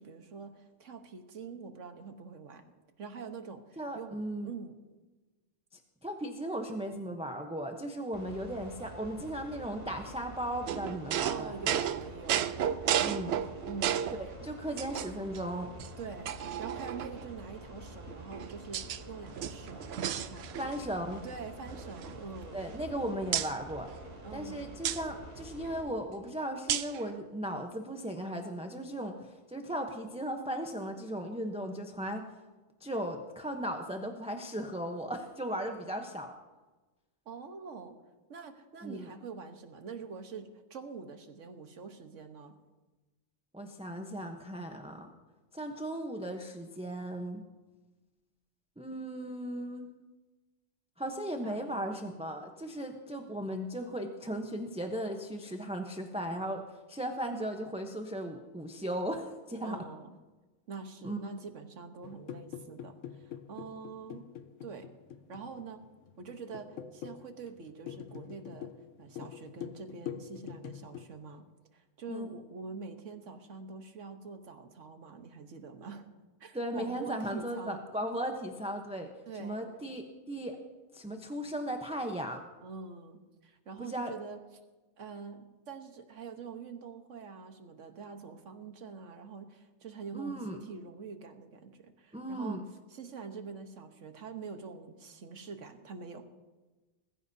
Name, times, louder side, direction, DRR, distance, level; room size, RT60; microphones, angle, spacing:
voice 1, 0.0-2.6 3.0-4.7 11.2-12.6 12.9-13.1 13.6-14.3 16.0-20.9 21.2-22.6 24.2-24.8 37.2-38.0 38.3-42.5 51.4-51.8 59.6-60.1 60.7-64.3 64.6-64.9 65.3-65.8 66.2-68.7 69.0-71.4 71.7-76.1 76.4-77.8 79.3-79.6 82.6-84.4 85.0-92.6 92.9-96.3, right 5 dB, 80° right, 6 dB, 1.5 m, -45 dB
voice 2, 3.8-4.5 6.0-11.8 13.0-13.3 14.2-15.7 20.6-21.2 22.5-23.9 24.3-32.3 32.8-36.3 38.8-39.1 43.5-45.1 45.5-47.4 48.8-49.9 51.0-59.8 61.0-61.2 72.1-72.3 76.5-79.1 79.4-80.6 80.9-82.4 83.8-84.1 90.1-90.6 92.1-92.6, right 1 dB, 5° right, 3 dB, 0.8 m, -37 dB
sound 1, 8.1-25.8, right 1 dB, 50° right, 3.3 m, -48 dB
sound 2, 10.7-14.2 14.8-15.4 15.8-15.9 16.3-17.3 18.1-19.0 19.3-20.9 21.1-21.3 21.7-22.9 23.3-23.5 24.8-25.0 26.7-27.0, right 9 dB, 65° right, 0.8 m, -33 dB
sound 3, 62.0-71.1, left 9 dB, 80° left, 1.1 m, -45 dB
21.0 x 14.5 x 2.8 m, 1.2 s
omnidirectional pair, 1.3 m